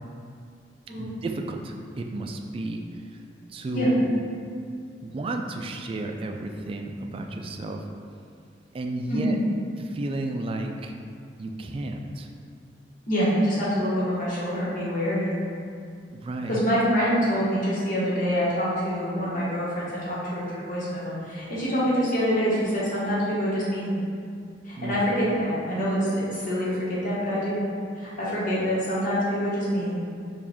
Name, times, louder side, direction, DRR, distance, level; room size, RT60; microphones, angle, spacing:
voice 1, 0.9-2.8 3.5-4.1 5.0-7.8 8.7-9.4 9.8-11.0 11.4-12.3 16.1-16.6 24.7-25.0, right 2 dB, 30° right, 3 dB, 0.3 m, -32 dB
voice 2, 9.1-9.4 13.1-15.3 16.5-24.0 24.6-27.6 28.0-30.0, equal, 50° left, -8 dB, 1.2 m, -26 dB
4.8 x 2.4 x 3.5 m, 2.3 s
head